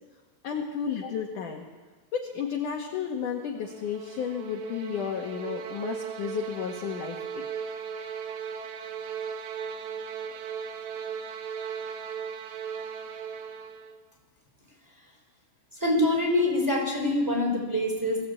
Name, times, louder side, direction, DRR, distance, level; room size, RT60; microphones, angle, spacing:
voice 1, 0.4-1.6 2.1-7.4, left 7 dB, 60° left, 1 dB, 2.6 m, -32 dB
sound 1, 3.5-14.0, right 7 dB, 85° right, 3.5 m, -37 dB
voice 2, 15.8-18.3, left 1 dB, 5° right, 0 dB, 5.0 m, -25 dB
22.0 x 16.0 x 8.5 m, 1.3 s
omnidirectional pair, 4.8 m